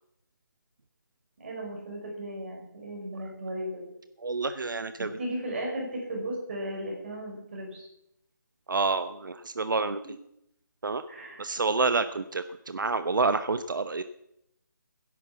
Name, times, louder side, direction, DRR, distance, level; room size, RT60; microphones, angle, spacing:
voice 1, 1.4-3.9 5.0-7.9 11.1-11.5, right 1 dB, 35° right, -1 dB, 6.5 m, -36 dB
voice 2, 4.2-5.2 8.7-10.0 10.8-11.0 11.4-14.0, right 4 dB, 80° right, 11 dB, 1.0 m, -28 dB
16.5 x 11.0 x 7.3 m, 0.79 s
hypercardioid pair, 175°, 11 cm